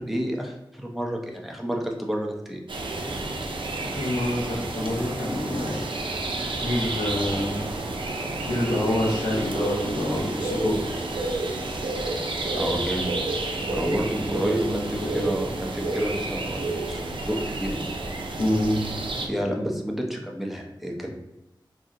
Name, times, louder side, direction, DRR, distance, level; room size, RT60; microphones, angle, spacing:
voice 1, 0.0-2.6 12.5-13.1 13.7-17.0 17.3-17.8 19.2-21.1, equal, ahead, 1 dB, 0.6 m, -30 dB
sound 1, 2.7-19.3, right 2 dB, 85° right, 0.4 m, -30 dB
voice 2, 3.8-5.8 6.6-7.7 8.4-10.8 14.3-15.3 18.4-18.8, left 1 dB, 85° left, -8 dB, 0.8 m, -27 dB
2.7 x 2.1 x 3.7 m, 0.97 s
wide cardioid pair, 55°, 8 cm